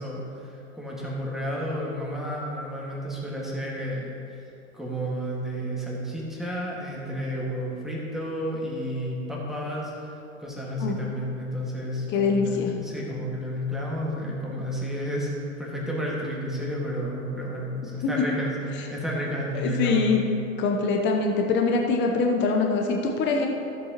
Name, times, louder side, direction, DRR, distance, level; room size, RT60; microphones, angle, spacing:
voice 1, 0.0-4.1 4.7-15.3 15.6-20.1, equal, ahead, -5 dB, 1.9 m, -31 dB
voice 2, 12.1-12.7 18.0-18.1 19.5-20.2 20.6-23.5, left 4 dB, 25° left, 1 dB, 0.9 m, -23 dB
13.5 x 7.8 x 3.0 m, 2.7 s
hypercardioid pair, 105°, 41 cm